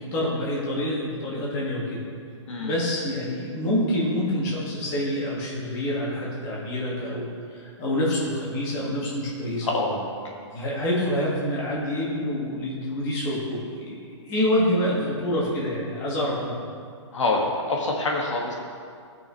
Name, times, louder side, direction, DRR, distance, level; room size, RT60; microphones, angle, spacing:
voice 1, 0.0-2.0 2.6-9.7 10.5-14.0 14.2-16.6, left 1 dB, 20° left, -5 dB, 1.8 m, -27 dB
voice 2, 2.5-2.8 9.6-10.1 17.1-18.5, left 2 dB, 75° left, -1 dB, 1.7 m, -26 dB
15.5 x 6.1 x 3.1 m, 2.3 s
hypercardioid pair, 165°, 16 cm